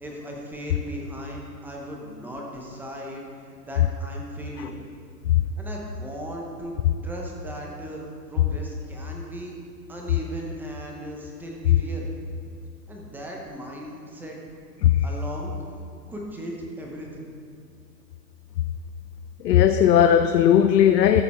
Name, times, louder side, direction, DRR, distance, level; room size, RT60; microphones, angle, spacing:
voice 1, 0.0-4.9 5.6-6.7 7.0-8.0 8.3-9.5 9.9-12.1 12.9-14.6 15.0-15.5 16.1-17.3, equal, 5° right, -1 dB, 0.7 m, -37 dB
voice 2, 19.4-21.2, left 10 dB, 75° left, 7 dB, 0.7 m, -17 dB
13.5 x 6.7 x 4.2 m, 2.2 s
hypercardioid pair, 135°, 50 cm